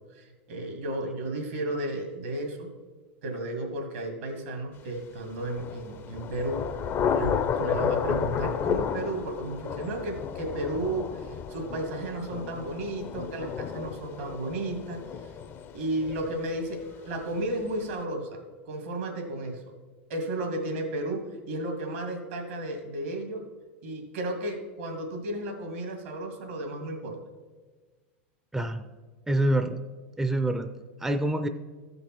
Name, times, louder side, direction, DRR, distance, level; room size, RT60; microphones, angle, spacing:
voice 1, 0.1-2.7 3.2-6.7 7.1-15.3 15.7-18.4 18.7-19.8 20.1-23.4 23.8-27.2, right 1 dB, 80° right, 3 dB, 2.2 m, -33 dB
Thunder / Rain, 5.4-17.0, left 7 dB, 35° left, 0.6 m, -32 dB
voice 2, 28.5-28.8 29.3-29.8 30.2-30.7 31.0-31.5, right 1 dB, 5° right, 8 dB, 0.5 m, -26 dB
14.5 x 5.3 x 4.5 m, 1.4 s
hypercardioid pair, 110°, 7 cm